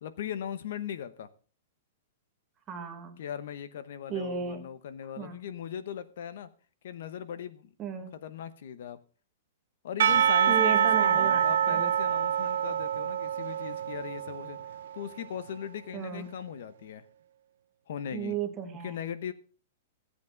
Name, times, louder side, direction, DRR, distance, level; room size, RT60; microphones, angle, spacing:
voice 1, 0.0-1.3 3.2-6.5 6.8-7.7 8.1-9.0 9.8-14.6 14.9-17.0 17.9-18.4 18.8-19.3, left 9 dB, 55° left, 13 dB, 1.0 m, -39 dB
voice 2, 2.7-3.2 4.1-4.6 5.2-5.4 7.8-8.1 10.5-11.9 15.9-16.3 18.1-19.0, right 7 dB, 15° right, 4 dB, 1.1 m, -35 dB
Percussion / Church bell, 10.0-15.1, right 9 dB, 65° right, 0.5 m, -26 dB
15.5 x 8.3 x 3.9 m, 0.39 s
supercardioid pair, 175°, 0 cm